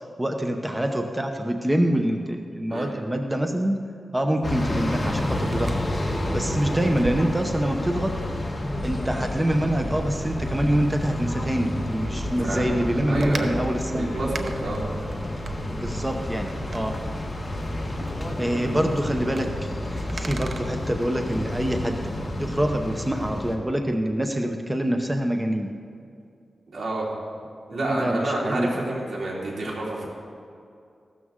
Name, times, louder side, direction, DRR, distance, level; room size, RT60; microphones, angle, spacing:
voice 1, 0.0-3.8 4.1-5.8 6.3-8.1 8.8-14.1 15.7-17.0 18.4-25.7 27.7-29.0, right 1 dB, 10° right, 4 dB, 0.7 m, -26 dB
sound 1, 4.4-23.6, left 1 dB, 25° left, 1.4 m, -30 dB
Wind, 5.2-21.2, right 3 dB, 60° right, 0.7 m, -40 dB
voice 2, 13.1-13.5 13.9-14.8 26.7-27.1 27.7-30.1, right 2 dB, 90° right, -4 dB, 2.8 m, -29 dB
15.5 x 12.5 x 3.7 m, 2.4 s
wide cardioid pair, 125°, 0 cm